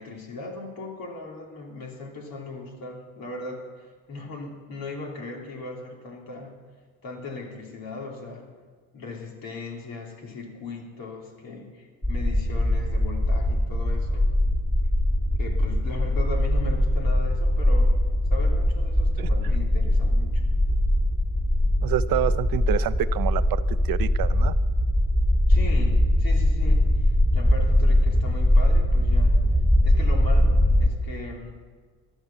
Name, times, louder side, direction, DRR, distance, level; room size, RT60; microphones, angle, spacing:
voice 1, 0.0-6.5 7.0-8.5 8.9-14.2 15.4-17.9 18.3-20.4 25.5-29.4 29.8-31.6, left 3 dB, 70° left, -1 dB, 3.1 m, -38 dB
sound 1, 12.0-30.9, left 1 dB, 15° left, 2.0 m, -21 dB
voice 2, 21.8-24.5, right 12 dB, 70° right, 15 dB, 0.6 m, -28 dB
13.5 x 9.9 x 7.2 m, 1.5 s
supercardioid pair, 70°, 36 cm